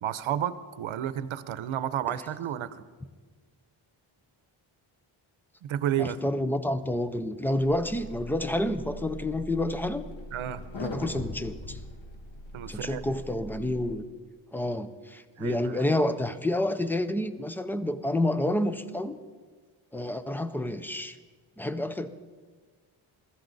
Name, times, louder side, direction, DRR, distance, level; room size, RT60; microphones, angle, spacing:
voice 1, 0.0-2.8 5.6-6.2 10.3-10.6 12.5-13.0 15.4-15.8, right 10 dB, 75° right, 14 dB, 0.8 m, -31 dB
voice 2, 6.0-10.1 10.8-11.8 12.7-14.0 14.5-19.2 19.9-21.2 21.6-22.1, left 1 dB, 5° left, 12 dB, 0.4 m, -29 dB
sound 1, 7.6-13.9, left 1 dB, 65° left, 1.7 m, -41 dB
22.0 x 14.0 x 4.0 m, 1.4 s
wide cardioid pair, 180°, 48 cm